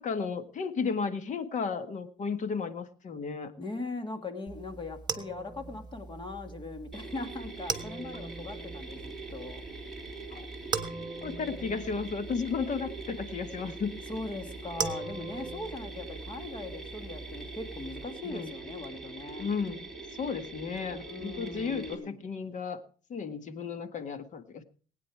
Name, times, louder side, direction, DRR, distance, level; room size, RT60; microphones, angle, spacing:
voice 1, 0.0-3.5 10.3-10.5 11.2-13.9 18.2-18.5 19.4-19.9 20.2-22.8 23.1-24.6, left 5 dB, 45° left, 10 dB, 1.7 m, -34 dB
voice 2, 3.6-9.6 14.1-19.5 20.9-22.2, left 2 dB, 30° left, 7 dB, 2.5 m, -40 dB
sound 1, 4.5-18.0, right 4 dB, 25° right, 1.5 m, -41 dB
Mechanisms, 6.9-22.0, right 3 dB, ahead, 3.6 m, -43 dB
20.5 x 9.4 x 4.8 m, 0.40 s
cardioid pair, 110°, 17 cm